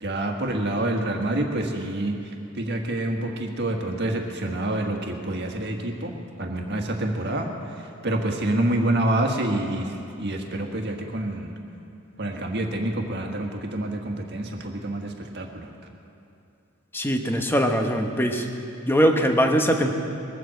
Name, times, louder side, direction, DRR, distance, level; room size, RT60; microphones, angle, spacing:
voice 1, 0.0-11.5 12.2-15.7, right 1 dB, 50° right, 2 dB, 1.5 m, -27 dB
voice 2, 16.9-18.5 18.9-19.9, equal, 10° left, 4 dB, 1.0 m, -21 dB
21.0 x 7.7 x 7.6 m, 2.7 s
head